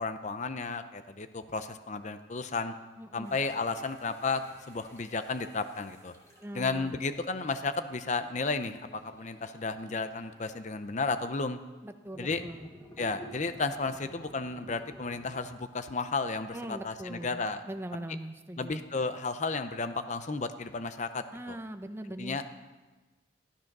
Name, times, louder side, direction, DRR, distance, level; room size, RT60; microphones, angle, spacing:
voice 1, 0.0-2.7 3.1-4.4 4.7-6.1 6.5-11.6 12.2-12.4 13.0-17.6 18.6-21.6 22.2-22.4, left 3 dB, 35° left, 10 dB, 0.6 m, -33 dB
voice 2, 3.0-3.4 6.4-7.0 11.8-12.7 16.5-17.4 17.7-18.8 21.3-22.4, right 1 dB, 10° right, 7 dB, 0.7 m, -41 dB
sound 1, 3.2-11.2 12.1-15.4, right 1 dB, 15° left, 2.6 m, -53 dB
15.0 x 13.0 x 6.0 m, 1.2 s
head